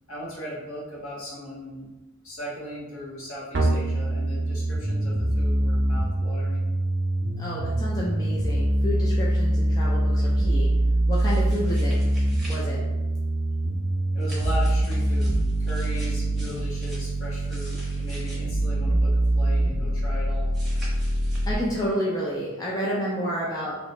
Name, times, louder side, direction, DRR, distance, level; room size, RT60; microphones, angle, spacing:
voice 1, 0.1-1.9 2.2-6.7 14.1-20.5, left 1 dB, 60° left, -7 dB, 1.2 m, -38 dB
sound 1, 3.5-21.5, right 1 dB, 50° right, 0.5 m, -24 dB
voice 2, 7.4-10.7 11.1-12.0 12.5-12.8 21.5-23.8, equal, 15° left, -5 dB, 0.4 m, -30 dB
sound 2, 11.1-12.6 14.2-18.4 20.5-21.5, equal, ahead, 0.8 m, -46 dB
2.9 x 2.7 x 3.2 m, 1.1 s
head